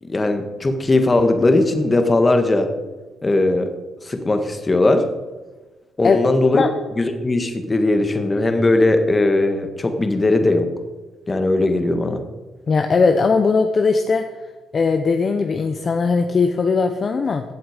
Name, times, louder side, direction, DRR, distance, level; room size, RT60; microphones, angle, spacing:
voice 1, 0.0-2.7 3.2-3.7 4.0-5.0 6.0-6.6 7.0-10.7 11.3-12.2, left 2 dB, 25° left, 6 dB, 1.7 m, -18 dB
voice 2, 12.7-14.3 14.7-17.4, left 4 dB, 40° left, 6 dB, 0.9 m, -18 dB
15.5 x 7.7 x 5.2 m, 1.2 s
cardioid pair, 90°, 0 cm